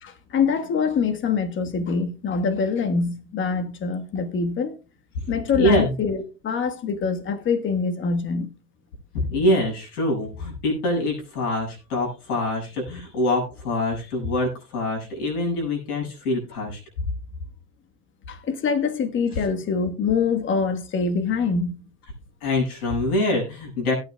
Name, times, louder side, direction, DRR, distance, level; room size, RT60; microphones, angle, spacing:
voice 1, 0.0-4.8 5.3-8.5 18.3-21.8, left 5 dB, 25° left, 1.5 m, -24 dB
voice 2, 5.5-5.9 9.3-16.8 19.3-19.4 22.4-23.9, left 1 dB, 75° left, 7.6 m, -24 dB
18.0 x 9.5 x 2.3 m
hypercardioid pair, 105°, 46 cm